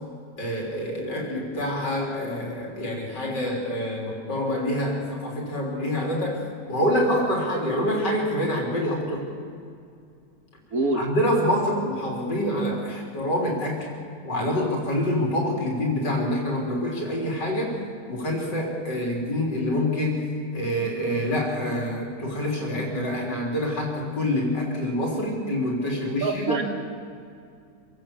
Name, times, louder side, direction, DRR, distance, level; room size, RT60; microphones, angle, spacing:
voice 1, 0.4-6.4 6.7-9.2 11.0-13.9 14.2-17.8 18.1-20.3 20.5-26.6, left 1 dB, 90° left, -1 dB, 4.3 m, -26 dB
voice 2, 10.7-11.1 26.2-26.6, right 3 dB, 60° right, 5 dB, 2.2 m, -25 dB
26.5 x 17.0 x 7.1 m, 2.4 s
omnidirectional pair, 1.8 m